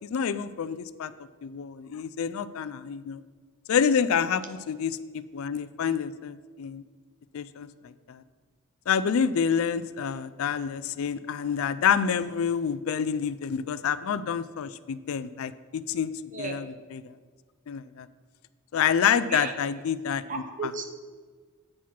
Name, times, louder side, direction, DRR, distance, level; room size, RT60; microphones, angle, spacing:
voice 1, 0.0-1.1 1.4-3.2 3.7-6.8 7.3-8.2 8.9-16.1 16.4-17.1 17.7-18.1 18.7-20.4, left 7 dB, 70° left, 15 dB, 0.4 m, -28 dB
voice 2, 20.3-20.9, right 4 dB, 35° right, 5 dB, 0.8 m, -33 dB
8.6 x 4.6 x 5.8 m, 1.5 s
head